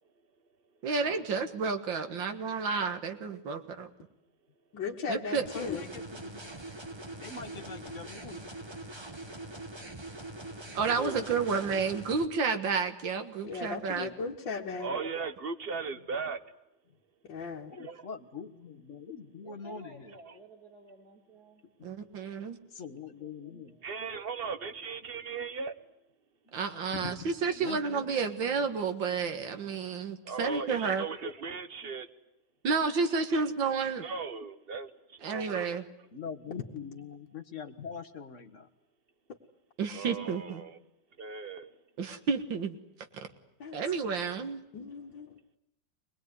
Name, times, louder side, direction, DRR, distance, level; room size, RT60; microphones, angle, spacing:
voice 1, 0.8-3.9 5.1-5.4 10.7-14.1 21.8-22.6 26.5-31.0 32.6-34.0 35.2-35.9 39.8-40.6 42.0-42.8 43.7-44.6, right 5 dB, 80° right, 2.4 m, -31 dB
voice 2, 4.7-5.8 8.2-8.4 13.5-14.9 17.2-17.7 43.6-43.8 44.7-45.3, left 5 dB, 70° left, 2.3 m, -37 dB
voice 3, 5.3-6.5 7.2-8.2 10.8-11.7 14.6-14.9 15.9-16.0 17.6-20.1 21.8-21.9 22.7-23.8 26.9-27.2 27.5-28.2 29.6-30.4 31.8-31.9 36.1-38.7, left 6 dB, 45° left, 1.7 m, -43 dB
sound 1, 5.4-12.2, right 2 dB, 15° right, 1.3 m, -43 dB
voice 4, 14.8-16.4 17.8-18.0 20.3-20.4 23.8-25.7 27.0-27.1 30.2-32.1 34.0-35.6 39.9-40.7 41.2-41.8, right 4 dB, 35° right, 1.2 m, -37 dB
voice 5, 19.4-21.6 23.2-23.9, right 1 dB, 50° right, 3.5 m, -53 dB
25.0 x 20.0 x 9.6 m
omnidirectional pair, 2.1 m